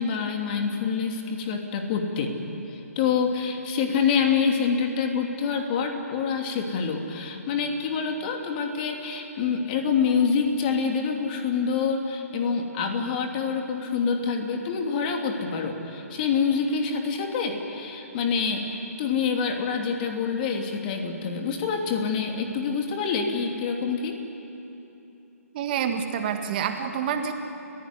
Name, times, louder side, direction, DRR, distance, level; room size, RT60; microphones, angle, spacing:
voice 1, 0.0-2.4 2.7-24.2, left 5 dB, 35° left, 3 dB, 2.8 m, -26 dB
voice 2, 25.5-27.3, right 8 dB, 35° right, 6 dB, 1.8 m, -27 dB
30.0 x 15.5 x 9.9 m, 3.0 s
figure-of-eight pair, 140°, 9 cm